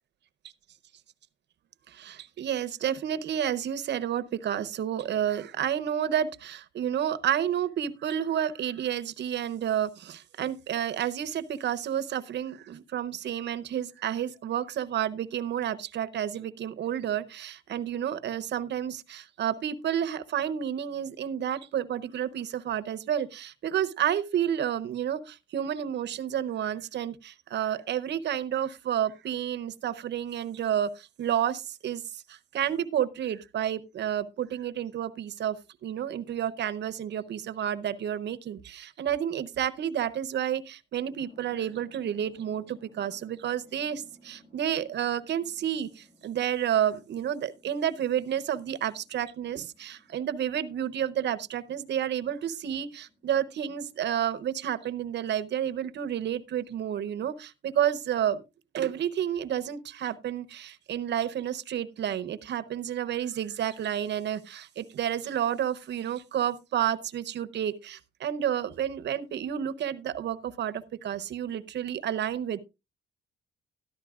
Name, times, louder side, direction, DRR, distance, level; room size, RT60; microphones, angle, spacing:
voice 1, 1.9-58.4 58.7-72.6, right 10 dB, 60° right, 0.8 m, -30 dB
sound 1, 41.2-54.6, left 1 dB, 45° left, 6.8 m, -59 dB
13.5 x 11.0 x 2.4 m
cardioid pair, 90°, 20 cm